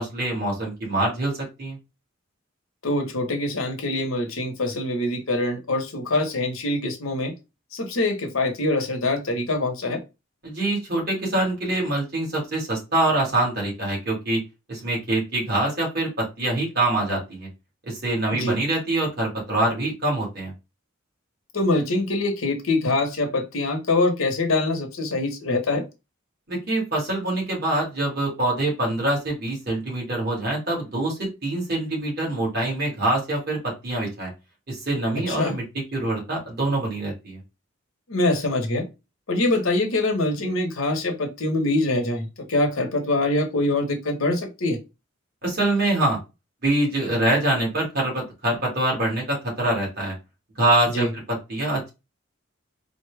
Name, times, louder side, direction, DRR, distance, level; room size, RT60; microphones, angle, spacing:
voice 1, 0.0-1.8 10.4-14.4 14.7-17.5 17.8-20.5 26.5-34.3 34.7-35.6 35.9-37.4 45.4-46.2 46.6-50.1 50.6-51.1 51.5-51.9, right 2 dB, 50° right, -2 dB, 1.8 m, -24 dB
voice 2, 2.8-7.3 7.7-10.0 18.3-18.6 21.5-25.8 35.3-35.5 38.1-38.9 39.3-44.8 50.9-51.1, left 2 dB, 90° left, 4 dB, 0.9 m, -24 dB
4.0 x 2.1 x 3.3 m, 0.26 s
head